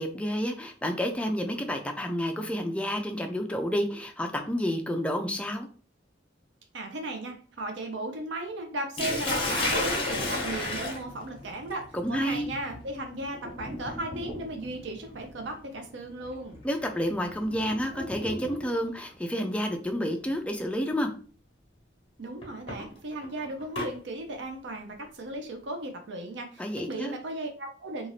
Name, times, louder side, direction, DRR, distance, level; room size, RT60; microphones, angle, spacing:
voice 1, 0.0-5.7 11.9-12.5 16.6-21.1 26.6-27.2, equal, 5° left, 3 dB, 0.3 m, -30 dB
voice 2, 6.7-16.5 22.2-28.1, right 2 dB, 65° right, 3 dB, 0.5 m, -36 dB
Sink (filling or washing), 9.0-18.9 20.0-20.3 20.8-20.9 22.4-23.9, left 2 dB, 30° left, 0.9 m, -34 dB
2.5 x 2.4 x 3.2 m, 0.41 s
head